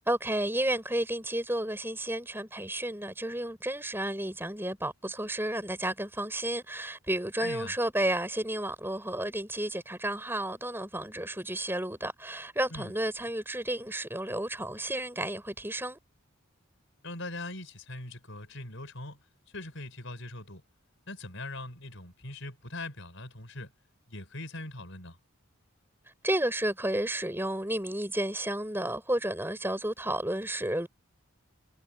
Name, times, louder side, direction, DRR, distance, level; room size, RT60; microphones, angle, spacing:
voice 1, 0.1-16.0 26.2-30.9, right 1 dB, 10° right, 6.4 m, -32 dB
voice 2, 7.4-7.7 12.7-12.9 17.0-19.2 19.5-20.6 21.1-23.7 24.1-25.2, left 2 dB, 60° left, 5.7 m, -41 dB
head